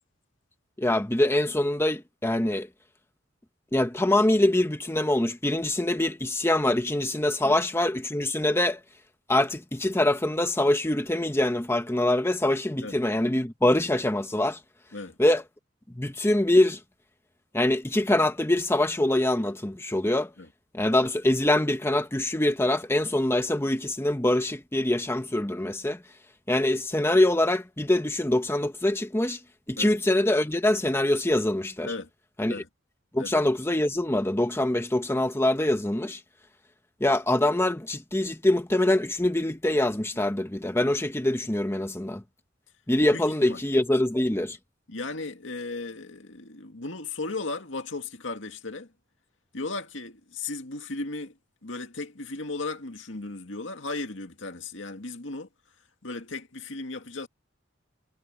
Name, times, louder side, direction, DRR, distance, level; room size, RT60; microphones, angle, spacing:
voice 1, 0.8-2.7 3.7-8.8 9.3-14.6 15.2-15.4 15.9-16.8 17.5-20.3 20.7-26.0 26.5-29.4 29.7-31.9 32.4-32.6 33.1-36.2 37.0-42.2 42.9-44.6, left 1 dB, 15° left, 1.1 m, -24 dB
voice 2, 43.1-43.6 44.9-48.9 49.5-51.4 51.6-55.5 56.0-57.3, left 3 dB, 75° left, 2.2 m, -36 dB
head